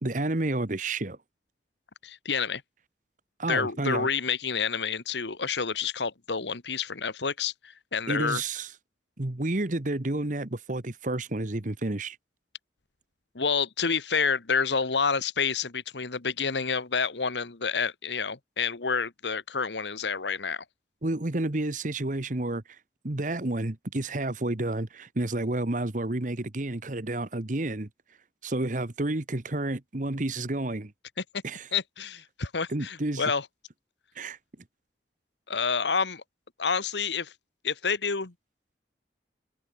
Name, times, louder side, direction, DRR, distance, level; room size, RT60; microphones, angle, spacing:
voice 1, 0.0-1.2 3.4-4.1 8.1-8.7 9.2-12.2 21.0-22.6 23.0-27.9 28.4-30.9 31.4-31.7 32.7-33.2 34.1-34.4, right 2 dB, 45° right, 1.3 m, -30 dB
voice 2, 2.0-2.6 3.5-8.4 13.3-20.6 31.7-33.5 35.5-36.2 36.6-37.3 37.6-38.3, left 5 dB, 80° left, 1.4 m, -29 dB
head